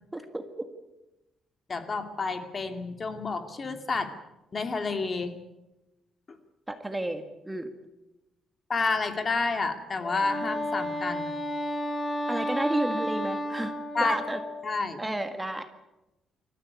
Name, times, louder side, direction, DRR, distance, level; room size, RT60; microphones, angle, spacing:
voice 1, 0.1-0.7 6.7-7.7 12.3-13.7 14.0-14.4 15.0-15.7, right 1 dB, 10° right, 8 dB, 1.6 m, -32 dB
voice 2, 1.7-4.1 4.5-5.4 8.7-11.3 13.9-14.2 14.6-15.0, left 3 dB, 30° left, 7 dB, 2.4 m, -29 dB
Wind instrument woodwind instrument, 10.0-14.7, equal, 5° left, 3.1 m, -32 dB
26.5 x 14.5 x 9.7 m, 0.97 s
cardioid pair, 140°, 0 cm